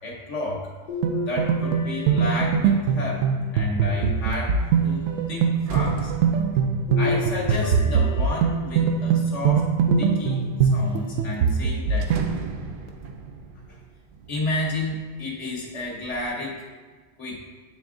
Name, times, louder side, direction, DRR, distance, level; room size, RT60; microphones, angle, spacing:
voice 1, 0.0-0.7 1.2-5.0 5.3-6.1 7.0-12.1 13.7-13.8 14.3-16.6 17.2-17.4, left 2 dB, 75° left, -3 dB, 1.4 m, -31 dB
sound 1, 0.9-3.1 3.9-4.9 6.9-8.9 9.9-10.7 11.4-11.5 12.9-13.0, left 3 dB, 50° left, 0.7 m, -34 dB
sound 2, 1.0-12.3, right 6 dB, 90° right, 0.9 m, -22 dB
sound 3, 3.3-3.6 4.0-9.3 9.9-10.6 11.0-11.1 11.3-15.3 15.6-16.3, right 5 dB, 60° right, 0.6 m, -37 dB
8.5 x 3.4 x 3.7 m, 1.4 s
omnidirectional pair, 1.3 m